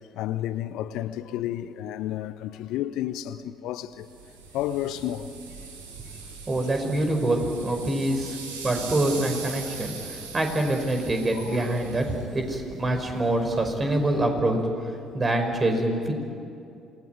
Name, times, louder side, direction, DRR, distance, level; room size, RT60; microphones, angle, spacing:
voice 1, 0.1-4.1 4.5-5.3 11.3-11.8, left 12 dB, 65° left, 0.8 m, -31 dB
sound 1, 4.0-14.3, right 4 dB, 80° right, 3.2 m, -41 dB
voice 2, 6.5-8.4 8.6-14.6 15.1-16.1, right 1 dB, 30° right, 5.2 m, -25 dB
27.5 x 19.0 x 9.5 m
figure-of-eight pair, 50°, 0 cm